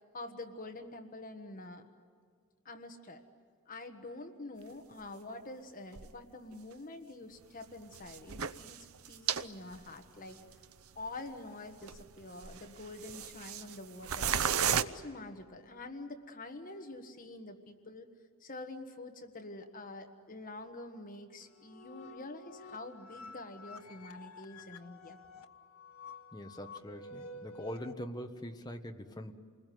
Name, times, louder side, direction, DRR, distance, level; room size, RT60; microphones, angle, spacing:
voice 1, 0.1-1.8 2.6-3.2 3.7-8.8 9.1-10.4 10.9-14.5 14.8-18.1 18.4-25.2, left 2 dB, 40° left, 6 dB, 1.5 m, -46 dB
sound 1, 4.9-5.0 5.9-6.1 6.5-6.6 7.9-9.5 9.7-9.8 10.5-10.6 11.1-11.2 11.8-12.1 12.4-13.8 14.0-14.8, right 8 dB, 70° right, 0.7 m, -33 dB
sound 2, 21.4-27.9, left 2 dB, 75° left, 1.4 m, -51 dB
voice 2, 26.3-29.3, equal, 20° left, 5 dB, 1.3 m, -43 dB
29.0 x 21.0 x 9.4 m, 2.1 s
head